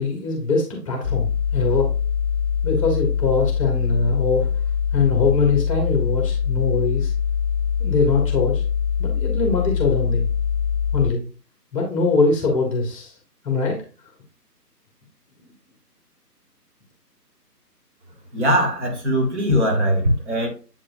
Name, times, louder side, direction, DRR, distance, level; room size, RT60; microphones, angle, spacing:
voice 1, 0.0-1.9 2.6-4.5 4.9-7.1 7.8-8.6 9.0-10.3 10.9-11.2 11.7-13.1 13.4-13.8, left 4 dB, 20° left, 0 dB, 1.5 m, -22 dB
sound 1, 1.0-11.1, left 7 dB, 55° left, 0.6 m, -23 dB
voice 2, 18.3-20.5, equal, 45° right, 2 dB, 2.3 m, -20 dB
8.3 x 4.9 x 2.6 m, 0.36 s
figure-of-eight pair, 150°, 49 cm